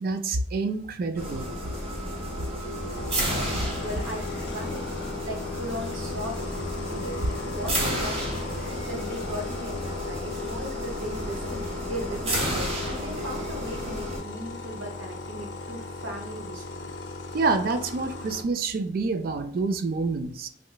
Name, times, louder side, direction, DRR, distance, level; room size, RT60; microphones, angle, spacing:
voice 1, 0.0-1.5 3.5-3.6 17.3-20.5, right 3 dB, 50° right, 9 dB, 0.4 m, -27 dB
sound 1, 1.2-14.2, equal, 30° right, 0.8 m, -32 dB
sound 2, 2.7-18.4, left 2 dB, 70° left, 0.5 m, -38 dB
voice 2, 3.8-4.9 5.2-8.2 8.9-16.9, equal, 85° right, 0 dB, 1.1 m, -37 dB
3.1 x 3.0 x 2.2 m, 0.64 s
head